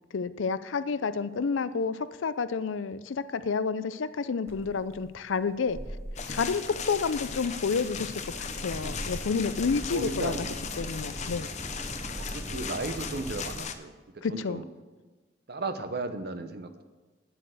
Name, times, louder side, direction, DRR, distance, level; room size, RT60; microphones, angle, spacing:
voice 1, 0.1-5.8 6.3-10.5 10.8-11.5 14.2-14.6, left 5 dB, 85° left, 14 dB, 0.5 m, -30 dB
sound 1, 4.5-13.6, right 1 dB, 15° right, 0.5 m, -41 dB
sound 2, 6.2-13.7, left 6 dB, 40° left, 0.7 m, -37 dB
voice 2, 9.9-10.5 12.2-14.6 15.5-16.7, right 3 dB, 55° right, 9 dB, 0.8 m, -35 dB
9.1 x 7.6 x 6.4 m, 1.3 s
head